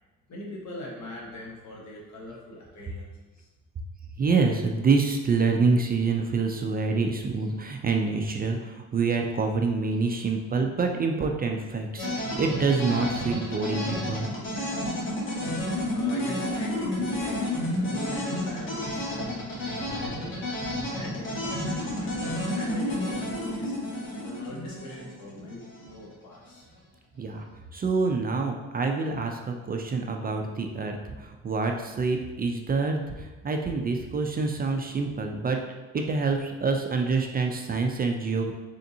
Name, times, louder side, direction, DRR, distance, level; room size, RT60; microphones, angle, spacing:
voice 1, 0.3-3.1 3.3-3.5 15.9-20.4 20.9-23.7 24.1-26.7, left 1 dB, 65° left, -3 dB, 1.3 m, -42 dB
voice 2, 4.2-14.3 27.2-27.4 27.7-35.6 35.9-38.5, right 4 dB, 30° right, 3 dB, 0.4 m, -26 dB
sound 1, 12.0-25.9, left 1 dB, 40° left, 1.4 m, -31 dB
3.8 x 3.5 x 2.7 m, 1.2 s
cardioid pair, 90°, 30 cm